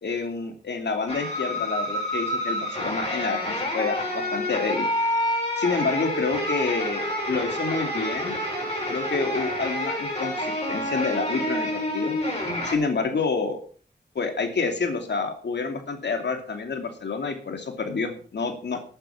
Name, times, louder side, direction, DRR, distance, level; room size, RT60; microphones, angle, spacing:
voice 1, 0.0-4.9 5.6-8.4 8.9-12.2 12.6-13.6 14.1-18.8, left 4 dB, 75° left, 5 dB, 2.7 m, -28 dB
sound 1, 1.1-12.8, left 1 dB, 35° left, 6.4 m, -28 dB
12.5 x 8.9 x 5.9 m, 0.43 s
cardioid pair, 65°, 18 cm